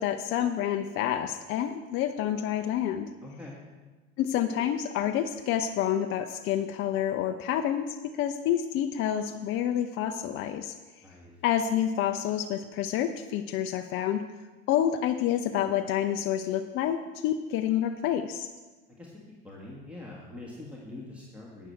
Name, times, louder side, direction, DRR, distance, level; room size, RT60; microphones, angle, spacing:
voice 1, 0.0-3.1 4.2-11.0 11.4-14.2 14.7-18.5, left 10 dB, 30° left, 6 dB, 0.5 m, -28 dB
voice 2, 3.2-3.6 11.0-11.3 19.0-19.1 19.4-21.7, left 2 dB, 5° right, -4 dB, 1.8 m, -44 dB
11.5 x 9.1 x 4.6 m, 1.3 s
figure-of-eight pair, 85°, 41 cm